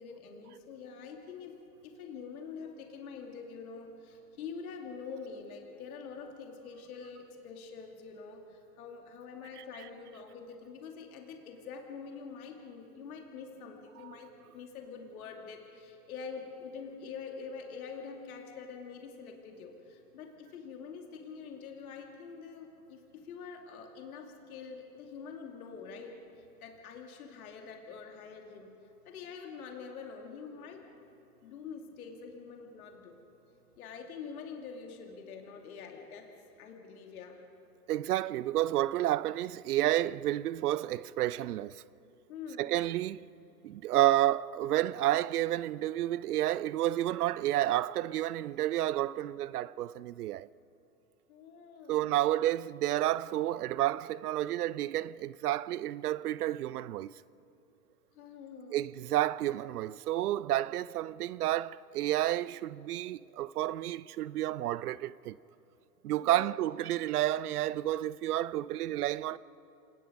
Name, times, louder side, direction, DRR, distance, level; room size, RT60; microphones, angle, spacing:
voice 1, 0.0-26.2 26.6-28.8 29.1-30.9 31.4-33.2 33.8-36.3 36.6-37.4 42.3-42.7 51.3-52.2 53.5-53.6 58.1-58.8 66.2-66.6, left 5 dB, 65° left, 2.7 m, -45 dB
voice 2, 37.9-41.8 42.6-43.3 43.6-50.5 51.9-57.2 58.7-65.4 66.0-69.4, right 14 dB, 70° right, 0.6 m, -30 dB
27.0 x 19.0 x 5.2 m
hypercardioid pair, 125°, 47 cm